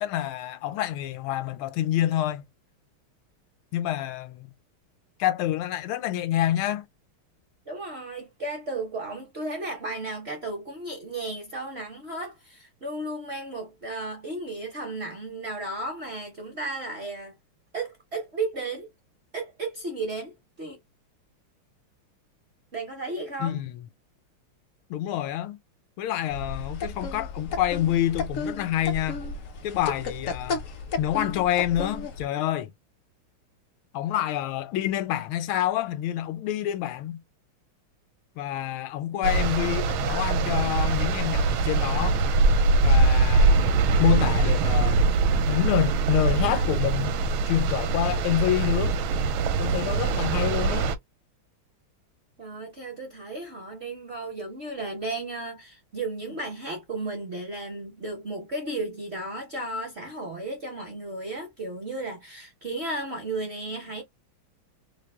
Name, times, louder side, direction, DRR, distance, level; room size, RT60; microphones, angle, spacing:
voice 1, 0.0-2.4 3.7-4.5 5.2-6.9 23.4-23.8 24.9-25.6 26.0-29.2 29.6-30.6 31.0-32.7 33.9-37.2 38.4-42.2 42.8-45.1 45.5-47.2 47.4-49.0 49.6-50.9, left 12 dB, 80° left, 1.4 m, -27 dB
voice 2, 7.7-17.3 17.7-18.9 19.3-20.8 22.7-23.6 52.4-64.0, right 2 dB, 50° right, 0.8 m, -34 dB
sound 1, 26.3-32.3, left 4 dB, 60° left, 0.8 m, -33 dB
sound 2, 39.2-51.0, right 3 dB, 80° right, 1.4 m, -23 dB
3.4 x 2.4 x 3.4 m
omnidirectional pair, 2.3 m